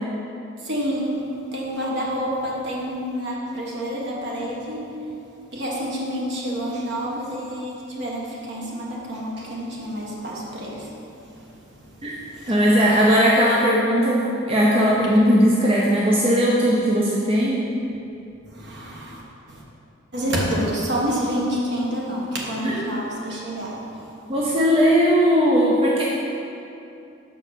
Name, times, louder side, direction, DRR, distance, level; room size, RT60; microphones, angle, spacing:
voice 1, 0.6-4.9 5.5-10.9 11.2-11.6 12.1-12.6 18.5-19.2 19.5-19.6 20.1-23.9, equal, 60° right, -4 dB, 1.4 m, -28 dB
voice 2, 12.5-17.6 22.6-22.9 24.3-26.0, equal, 30° right, -5 dB, 0.6 m, -18 dB
5.4 x 5.3 x 6.5 m, 2.8 s
head